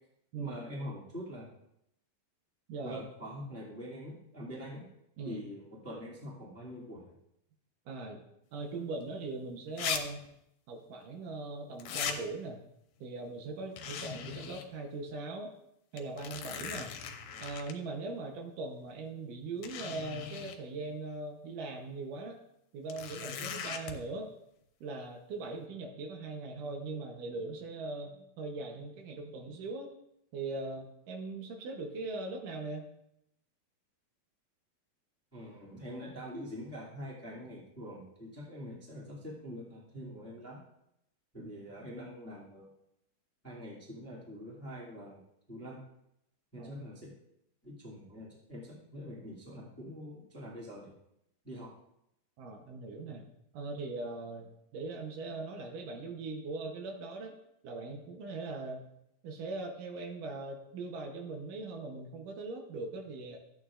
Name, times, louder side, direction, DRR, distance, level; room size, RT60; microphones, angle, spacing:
voice 1, 0.4-1.5 2.8-4.8 5.2-7.1 35.3-40.6 41.3-42.7 43.4-45.2 45.5-45.8 46.5-47.1 47.6-50.9 51.4-51.7, equal, 5° left, -5 dB, 1.4 m, -44 dB
voice 2, 2.7-3.0 5.2-5.4 7.9-8.2 8.5-10.2 10.7-12.6 13.0-15.5 15.9-16.9 17.4-22.4 22.7-24.3 24.8-29.9 30.3-32.9 41.4-41.5 46.6-46.7 52.4-53.2 53.5-57.3 57.6-58.9 59.2-63.4, right 3 dB, 70° right, 2 dB, 2.3 m, -40 dB
sound 1, 9.0-9.1 9.8-10.0 10.3-10.4 11.8-12.2 13.8-14.7 15.1-15.2 16.0-17.7 18.9-19.0 19.6-20.6 22.9-23.9, left 8 dB, 90° left, 2.7 m, -38 dB
13.5 x 9.0 x 2.4 m, 0.79 s
omnidirectional pair, 4.2 m